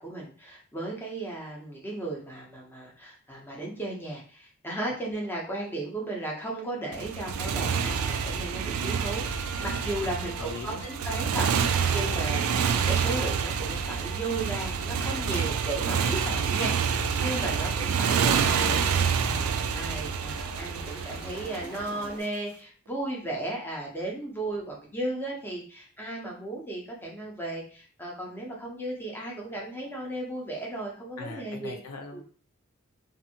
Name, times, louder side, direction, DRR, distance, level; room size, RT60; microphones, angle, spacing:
voice 1, 0.0-31.8 32.1-32.2, right 2 dB, 10° left, -2 dB, 0.6 m, -35 dB
Motorcycle, 6.9-22.1, right 6 dB, 70° right, 0.3 m, -27 dB
sound 1, 9.2-22.2, right 1 dB, 25° right, 0.8 m, -48 dB
voice 2, 10.0-10.8 17.3-17.8 18.1-18.7 31.2-32.2, left 4 dB, 80° left, 4 dB, 0.5 m, -42 dB
2.6 x 2.6 x 2.7 m, 0.42 s
head